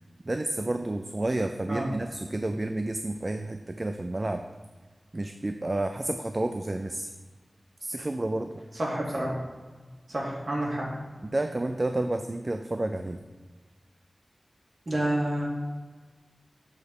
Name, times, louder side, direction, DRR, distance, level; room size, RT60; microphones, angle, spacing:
voice 1, 0.3-4.4 5.1-7.1 7.8-8.6 11.3-13.2, right 2 dB, 35° right, 6 dB, 0.4 m, -30 dB
voice 2, 8.8-9.4 10.1-10.9 14.9-15.4, right 1 dB, 55° right, -4 dB, 2.4 m, -29 dB
7.2 x 4.2 x 6.5 m, 1.4 s
wide cardioid pair, 70°, 0 cm